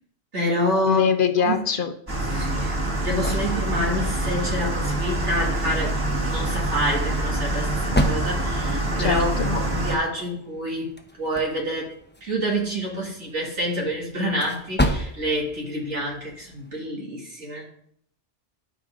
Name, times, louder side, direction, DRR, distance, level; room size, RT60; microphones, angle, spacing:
voice 1, 0.3-1.1 1.4-1.6 2.3-11.9 12.2-17.7, equal, 80° right, -2 dB, 2.8 m, -28 dB
voice 2, 0.8-1.9 9.0-9.6, left 7 dB, 50° left, 8 dB, 1.0 m, -23 dB
sound 1, 2.1-10.0, right 1 dB, 20° right, 1.6 m, -25 dB
sound 2, 2.4-16.8, equal, 10° left, 0.8 m, -33 dB
12.5 x 5.5 x 3.8 m, 0.65 s
omnidirectional pair, 1.2 m